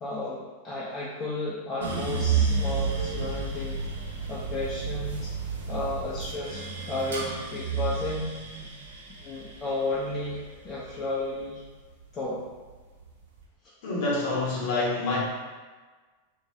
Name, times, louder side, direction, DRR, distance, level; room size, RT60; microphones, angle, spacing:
voice 1, 0.0-3.9 4.3-5.3 5.7-8.3 9.2-11.6 12.1-12.4, left 2 dB, 25° left, -7 dB, 0.6 m, -33 dB
sound 1, 1.8-12.0 12.5-13.2, right 5 dB, 70° right, 0.9 m, -31 dB
voice 2, 13.8-15.2, left 2 dB, 55° left, -5 dB, 1.1 m, -27 dB
2.7 x 2.6 x 2.9 m, 1.4 s
figure-of-eight pair, 90°, 0 cm